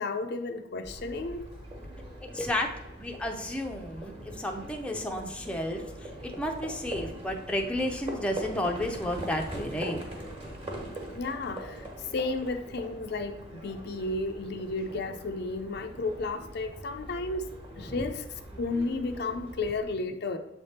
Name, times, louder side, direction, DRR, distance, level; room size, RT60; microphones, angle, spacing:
voice 1, 0.0-1.4 11.2-17.5 17.8-20.4, left 3 dB, 55° left, 6 dB, 0.5 m, -33 dB
Livestock farm animals working animals, 0.8-19.8, right 1 dB, 25° right, 1.3 m, -42 dB
voice 2, 2.2-10.0 18.0-18.1, left 1 dB, 5° left, 1 dB, 0.5 m, -32 dB
7.1 x 3.4 x 4.2 m, 0.97 s
head